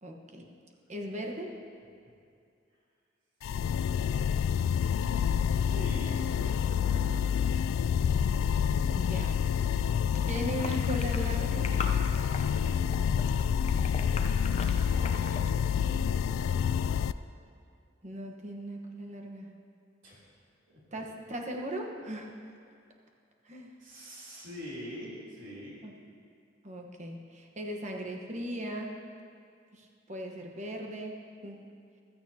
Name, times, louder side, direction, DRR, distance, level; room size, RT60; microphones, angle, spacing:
voice 1, 0.0-0.4 0.9-1.5 8.9-9.4 10.2-11.7 18.0-19.5 20.9-22.3 23.4-23.7 25.8-25.9 26.6-29.0 29.7-31.2 31.4-31.6, right 1 dB, 35° right, 1 dB, 1.2 m, -38 dB
sound 1, 3.4-17.1, left 8 dB, 85° left, 0.3 m, -28 dB
voice 2, 4.7-8.0 14.4-17.2 20.0-20.2 20.7-21.0 23.8-25.8, equal, 70° right, -7 dB, 3.3 m, -46 dB
sound 2, 9.8-15.5, left 3 dB, 35° left, 0.7 m, -42 dB
15.5 x 13.5 x 2.9 m, 2.4 s
head